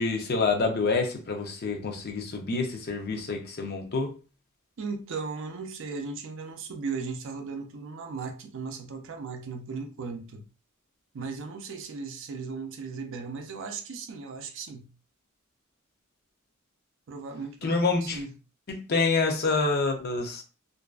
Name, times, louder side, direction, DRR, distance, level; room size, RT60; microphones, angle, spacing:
voice 1, 0.0-4.1 17.6-18.2 18.7-20.4, left 3 dB, 50° left, 0.6 m, -27 dB
voice 2, 4.8-10.5 11.1-14.9 17.1-18.3, right 4 dB, 65° right, 0.4 m, -37 dB
2.6 x 2.4 x 2.3 m
head